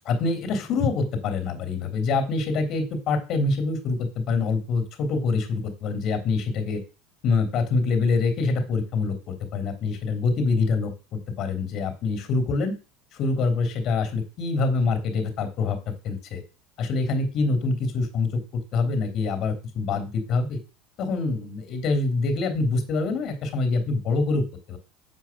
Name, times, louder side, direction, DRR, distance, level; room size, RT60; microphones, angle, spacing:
voice 1, 0.0-6.8 7.2-12.7 13.2-15.8 16.0-16.4 16.8-20.6 21.0-24.8, left 3 dB, 50° left, 6 dB, 3.2 m, -25 dB
7.7 x 5.0 x 7.4 m, 0.32 s
supercardioid pair, 115°, 0 cm